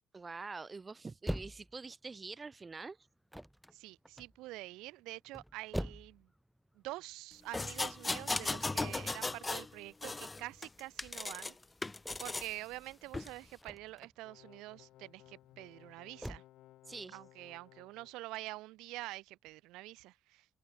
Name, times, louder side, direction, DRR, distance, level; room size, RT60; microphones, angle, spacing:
voice 1, 0.1-3.0 16.9-17.2, right 4 dB, 35° right, 0.7 m, -45 dB
sound 1, 1.3-16.4, equal, ahead, 1.4 m, -46 dB
voice 2, 3.7-6.3 6.7-11.6 12.2-16.4 17.1-20.5, right 19 dB, 80° right, 0.4 m, -46 dB
sound 2, 7.5-9.7 10.0-11.5 11.8-12.5 13.1-13.3, left 3 dB, 25° left, 0.5 m, -37 dB
sound 3, 14.2-18.1, left 15 dB, 75° left, 1.5 m, -60 dB
hypercardioid pair, 50°, 0 cm